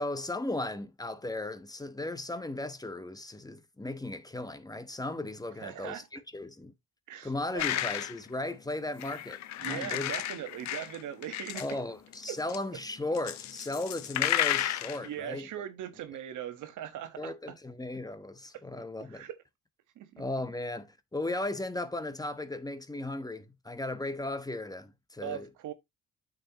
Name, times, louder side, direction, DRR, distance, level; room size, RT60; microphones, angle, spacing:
voice 1, 0.0-6.7 7.2-10.1 11.5-15.5 17.2-19.3 20.2-25.5, left 2 dB, 10° left, 1.1 m, -36 dB
voice 2, 5.6-6.1 7.1-7.3 7.5-7.6 9.6-11.6 12.3-12.4 15.0-17.5 19.0-19.4 20.0-20.2 25.2-25.7, right 10 dB, 80° right, 1.4 m, -40 dB
sound 1, 7.6-8.2 9.0-11.8 12.1-12.6 13.1-15.1, left 13 dB, 65° left, 0.7 m, -32 dB
8.8 x 6.6 x 2.9 m
cardioid pair, 90°, 30 cm